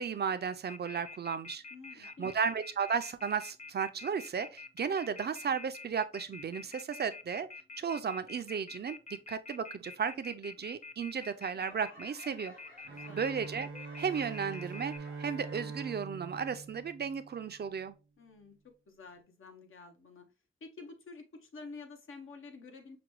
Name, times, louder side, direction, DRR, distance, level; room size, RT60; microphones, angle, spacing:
voice 1, 0.0-1.6 2.0-7.5 7.8-9.0 9.3-12.5 13.1-13.7 14.0-17.9, right 6 dB, 50° right, 0.4 m, -34 dB
Telephone, 0.7-15.0, left 4 dB, 35° left, 0.4 m, -47 dB
voice 2, 1.7-2.3 12.9-13.2 18.2-20.3 20.6-23.0, left 4 dB, 80° left, 0.9 m, -50 dB
Laughter / Clapping / Crowd, 11.2-16.0 16.3-16.8 17.4-17.5, left 1 dB, 65° left, 2.4 m, -56 dB
Bowed string instrument, 12.8-17.7, right 4 dB, 70° right, 0.8 m, -44 dB
5.9 x 2.2 x 3.0 m
wide cardioid pair, 110°, 21 cm